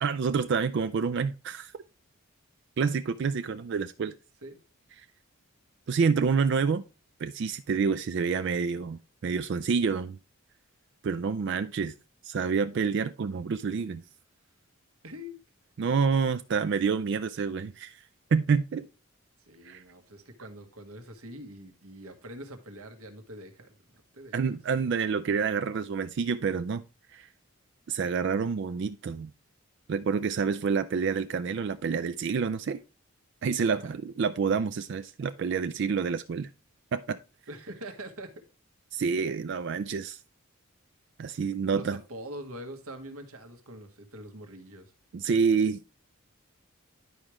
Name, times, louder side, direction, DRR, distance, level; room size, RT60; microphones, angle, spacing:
voice 1, 0.0-1.7 2.8-4.1 5.9-6.8 7.2-10.2 11.0-11.9 12.2-14.0 15.8-18.0 18.3-18.9 19.6-19.8 24.3-26.8 27.1-27.3 27.9-29.3 29.9-32.8 33.4-36.5 36.9-37.2 38.9-40.2 41.2-42.0 45.1-45.8, right 5 dB, 55° right, 0.3 m, -28 dB
voice 2, 15.0-15.4 19.5-23.8 24.1-24.6 33.7-33.9 37.5-38.3 41.7-44.9, equal, 85° right, 1.4 m, -44 dB
10.5 x 4.9 x 3.0 m
head